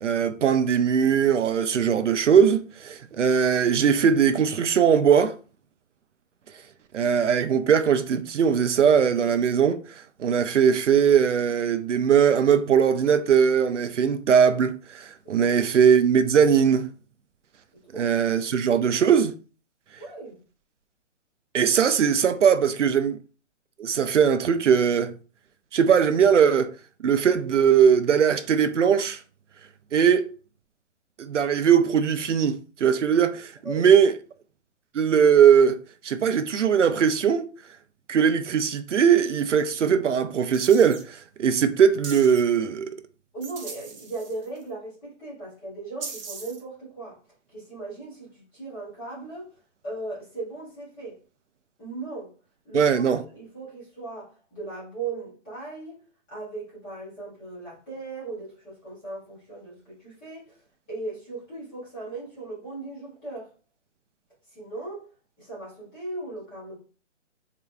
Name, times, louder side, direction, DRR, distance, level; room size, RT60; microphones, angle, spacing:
voice 1, 0.0-5.3 6.9-9.8 10.2-16.9 18.0-19.3 21.5-23.2 23.8-25.1 25.7-26.7 27.0-29.2 29.9-30.3 31.2-34.1 34.9-35.8 36.0-37.5 38.1-42.9 52.7-53.2, right 7 dB, 70° right, 0.6 m, -20 dB
voice 2, 15.2-15.7 17.7-18.1 20.0-20.4 33.6-33.9 43.3-47.2 47.5-49.5 49.8-51.2 51.8-52.3 52.6-56.0 56.3-60.6 60.9-63.5 64.5-65.1 65.4-66.8, right 2 dB, 5° left, 0.8 m, -37 dB
sound 1, 40.5-41.0 42.0-42.4 43.4-44.6 46.0-46.6, right 5 dB, 45° right, 1.0 m, -39 dB
5.0 x 2.9 x 2.3 m
hypercardioid pair, 170°, 37 cm